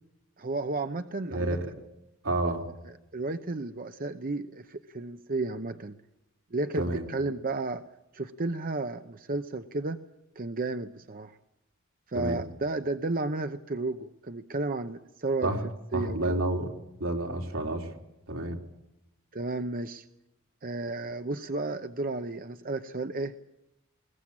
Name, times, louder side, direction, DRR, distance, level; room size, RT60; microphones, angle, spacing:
voice 1, 0.4-1.6 3.1-6.0 6.5-7.8 8.1-10.0 10.4-11.4 12.1-15.5 15.9-16.4 19.3-20.0 20.6-23.3, right 2 dB, 45° right, 9 dB, 0.8 m, -32 dB
voice 2, 1.3-1.6 2.2-2.6 6.8-7.1 12.1-12.4 15.4-15.6 15.9-16.7 17.0-17.9 18.3-18.6, right 1 dB, 80° right, 2 dB, 3.9 m, -29 dB
21.5 x 20.0 x 8.7 m, 0.89 s
head